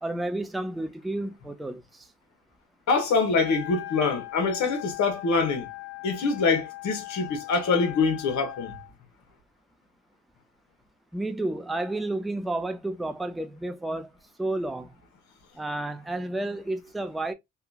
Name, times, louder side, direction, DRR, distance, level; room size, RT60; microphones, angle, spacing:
voice 1, 0.0-2.1 11.1-14.1 14.4-14.9 15.5-17.3, right 2 dB, ahead, 0.4 m, -31 dB
voice 2, 2.9-5.7 6.0-8.8, left 4 dB, 70° left, 1.1 m, -25 dB
Wind instrument woodwind instrument, 3.3-8.9, left 17 dB, 45° left, 1.4 m, -40 dB
2.8 x 2.3 x 2.3 m
cardioid pair, 90°, 30 cm